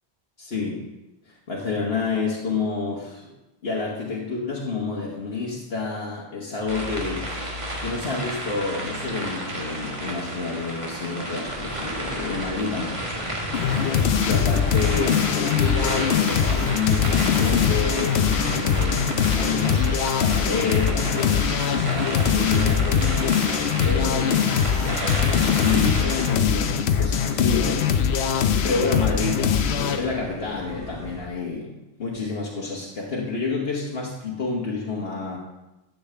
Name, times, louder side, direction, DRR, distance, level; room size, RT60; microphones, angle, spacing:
voice 1, 0.4-0.8 1.3-3.3 3.6-13.9 14.2-29.5 30.0-35.4, left 4 dB, 70° left, -3 dB, 1.4 m, -29 dB
sound 1, 6.7-26.3, right 1 dB, 30° right, 1.5 m, -32 dB
sound 2, 11.5-31.3, equal, 5° left, 1.5 m, -38 dB
sound 3, 13.5-30.1, left 7 dB, 85° left, 0.9 m, -22 dB
12.0 x 7.8 x 3.3 m, 0.98 s
omnidirectional pair, 1.0 m